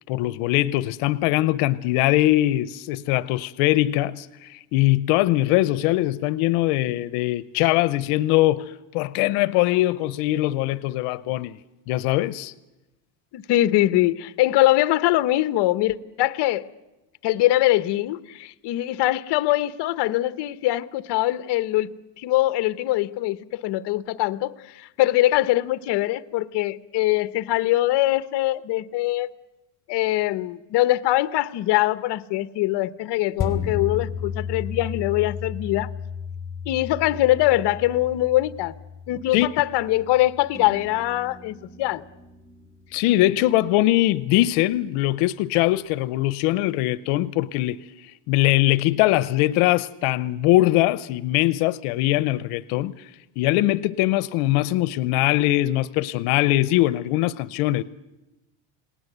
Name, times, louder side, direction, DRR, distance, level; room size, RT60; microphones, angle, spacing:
voice 1, 0.1-11.6 11.9-12.5 39.3-39.5 42.9-47.8 48.3-52.9 53.4-57.8, left 16 dB, 80° left, 0.8 m, -21 dB
voice 2, 13.3-16.6 17.2-21.9 22.2-29.3 29.9-35.9 36.7-38.7 39.1-42.0, left 16 dB, 55° left, 1.0 m, -22 dB
sound 1, 33.4-42.2 42.6-42.7, left 6 dB, 25° left, 3.5 m, -34 dB
sound 2, 40.5-44.4, right 1 dB, 5° left, 3.4 m, -47 dB
29.0 x 19.0 x 8.1 m
cardioid pair, 140°, 50 cm